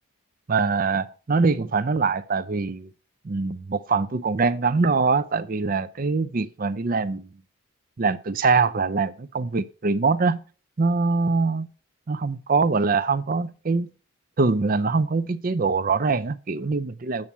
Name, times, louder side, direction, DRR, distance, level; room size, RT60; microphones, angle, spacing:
voice 1, 0.5-2.9 3.2-7.3 8.0-10.4 10.8-11.7 12.1-13.9 14.4-17.3, right 4 dB, 40° right, 0.5 m, -23 dB
8.6 x 7.3 x 4.3 m
head